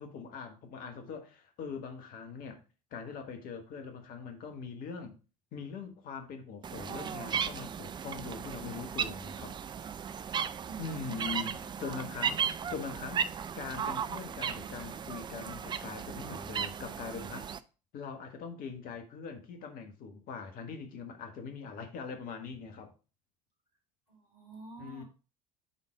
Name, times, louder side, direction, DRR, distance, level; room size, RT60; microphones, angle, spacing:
voice 1, 0.0-2.6 2.9-5.1 5.5-9.6 10.8-11.5 11.8-13.3 13.5-17.5 17.9-22.9 24.8-25.0, left 5 dB, 45° left, 1.5 m, -42 dB
sound 1, 6.6-17.6, right 7 dB, 25° right, 0.4 m, -36 dB
voice 2, 10.7-12.0 24.1-25.0, right 1 dB, 85° right, 2.6 m, -47 dB
8.3 x 4.0 x 4.8 m
figure-of-eight pair, 65°, 20 cm